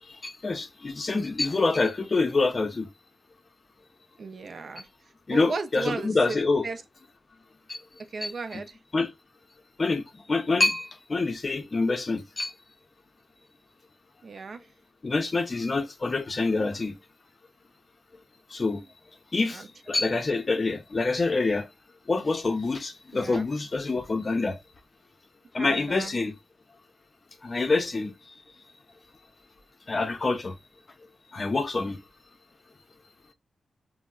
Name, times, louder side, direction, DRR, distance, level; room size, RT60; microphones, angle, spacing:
voice 1, 0.1-2.9 5.3-6.7 7.7-7.8 8.2-8.6 8.9-9.1 9.8-10.0 10.3-12.5 15.0-17.0 18.5-18.8 19.3-19.6 19.9-21.7 22.1-24.6 25.5-26.3 27.4-28.1 29.9-30.5 31.3-32.0, left 3 dB, 35° left, 0.5 m, -26 dB
voice 2, 4.2-4.9 5.3-6.4 6.6-6.8 8.0-8.8 14.2-14.7 19.5-20.2 23.1-23.4 25.6-26.2, right 4 dB, 55° right, 0.4 m, -36 dB
4.2 x 2.0 x 2.3 m
wide cardioid pair, 105°, 0 cm